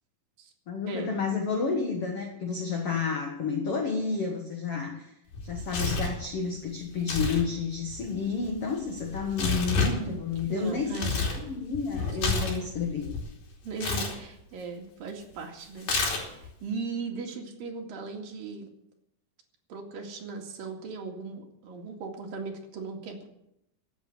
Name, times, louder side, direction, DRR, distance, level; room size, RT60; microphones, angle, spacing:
voice 1, 0.7-5.1 5.4-10.9 11.3-13.1, left 5 dB, 50° left, 2 dB, 2.0 m, -30 dB
Tearing, 5.3-6.2 7.0-7.4 7.7-11.4 11.7-13.2 13.8-14.1 15.8-16.5, left 4 dB, 70° left, 4.8 m, -29 dB
voice 2, 10.5-11.2 13.6-15.9 16.4-18.7 19.7-23.3, right 4 dB, 70° right, 1 dB, 3.9 m, -38 dB
15.5 x 8.6 x 8.2 m, 0.81 s
omnidirectional pair, 4.3 m